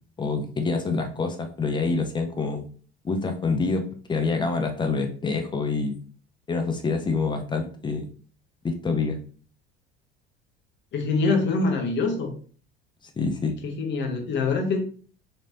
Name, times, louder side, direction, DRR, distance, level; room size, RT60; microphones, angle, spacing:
voice 1, 0.2-2.7 3.0-6.0 6.5-8.0 8.6-9.2 13.2-13.6, left 4 dB, 15° left, 5 dB, 0.6 m, -26 dB
voice 2, 10.9-12.3 13.6-14.8, left 3 dB, 35° left, 4 dB, 1.0 m, -24 dB
4.2 x 3.1 x 2.6 m, 0.43 s
figure-of-eight pair, 65°, 32 cm